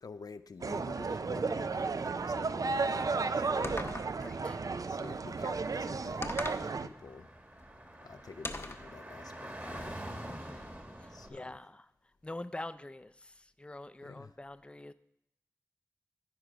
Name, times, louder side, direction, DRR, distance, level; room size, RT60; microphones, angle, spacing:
voice 1, 0.0-3.8 4.9-7.3 8.0-10.1 11.1-11.6 14.0-14.3, left 4 dB, 80° left, 11 dB, 0.4 m, -49 dB
sound 1, 0.6-6.9, right 4 dB, 65° right, 0.4 m, -33 dB
sound 2, 3.6-4.3 6.2-6.7 8.4-8.9, left 2 dB, 40° left, 0.8 m, -39 dB
voice 2, 4.2-4.6 10.3-10.7 11.0-11.9 12.2-14.9, left 2 dB, 15° left, 12 dB, 0.4 m, -45 dB
Car / Traffic noise roadway noise, 6.2-11.3, right 1 dB, 30° right, 1.4 m, -46 dB
14.0 x 4.8 x 5.1 m, 0.79 s
cardioid pair, 45°, 7 cm